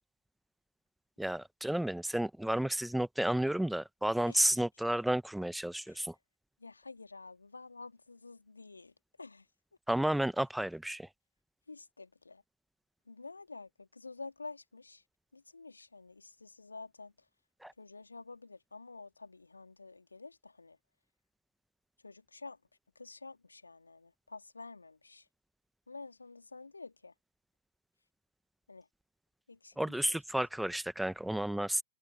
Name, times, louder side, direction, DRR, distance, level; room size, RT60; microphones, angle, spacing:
voice 1, 1.2-6.1 9.9-11.1 17.6-17.7 29.8-31.8, right 1 dB, 5° right, 1.3 m, -32 dB
voice 2, 6.6-8.9 9.2-9.4 11.7-12.4 13.1-15.0 15.3-17.1 17.8-20.8 22.0-22.6 23.0-25.2 25.9-27.1 28.7-28.8 29.5-29.7 30.1-30.2, left 3 dB, 80° left, 2.4 m, -49 dB
figure-of-eight pair, 90°, 0 cm